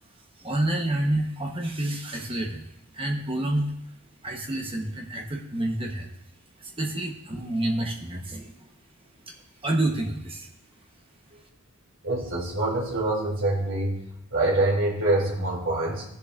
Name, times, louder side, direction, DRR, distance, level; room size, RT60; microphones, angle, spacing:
voice 1, 0.4-2.7 2.9-3.7 4.2-6.1 6.6-8.5 9.2-9.3 9.6-10.5, right 1 dB, 25° right, 0 dB, 1.2 m, -28 dB
voice 2, 12.0-14.0 14.3-16.0, right 2 dB, 60° right, -4 dB, 3.1 m, -25 dB
16.0 x 6.9 x 2.6 m, 0.78 s
head